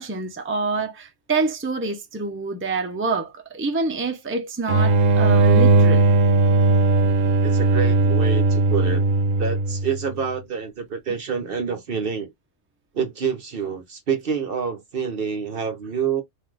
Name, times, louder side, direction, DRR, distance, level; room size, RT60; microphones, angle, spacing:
voice 1, 0.0-6.1, right 3 dB, 15° right, 0.6 m, -26 dB
sound 1, 4.7-10.1, right 3 dB, 85° right, 1.0 m, -18 dB
voice 2, 7.4-9.0 9.4-12.3 12.9-16.2, right 6 dB, 50° right, 0.9 m, -27 dB
3.8 x 2.6 x 4.6 m
omnidirectional pair, 1.3 m